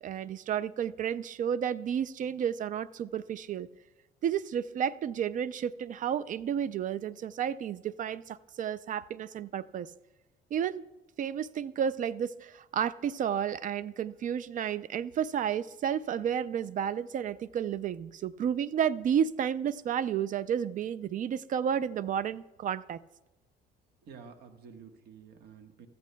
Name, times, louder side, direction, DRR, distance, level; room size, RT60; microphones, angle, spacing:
voice 1, 0.0-3.7 4.2-9.9 10.5-10.8 11.2-23.0, right 8 dB, 50° right, 17 dB, 0.4 m, -31 dB
voice 2, 24.0-25.9, right 6 dB, 70° right, 5 dB, 1.3 m, -50 dB
14.5 x 14.0 x 2.2 m, 1.0 s
cardioid pair, 85°, 17 cm